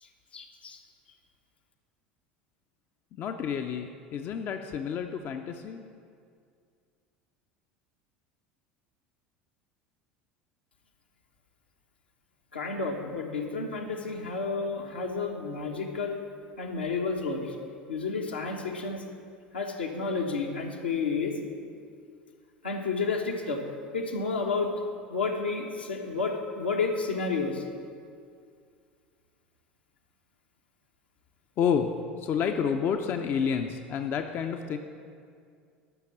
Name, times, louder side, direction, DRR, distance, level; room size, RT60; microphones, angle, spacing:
voice 1, 0.0-0.8 12.5-16.2 16.6-17.5 17.9-19.0 19.5-21.4 22.6-23.6 23.9-24.7 25.1-27.7, left 4 dB, 75° left, 0 dB, 1.2 m, -31 dB
voice 2, 3.1-5.9 31.6-34.8, left 7 dB, 40° left, 6 dB, 0.5 m, -29 dB
12.5 x 5.9 x 7.1 m, 2.3 s
figure-of-eight pair, 70°, 5 cm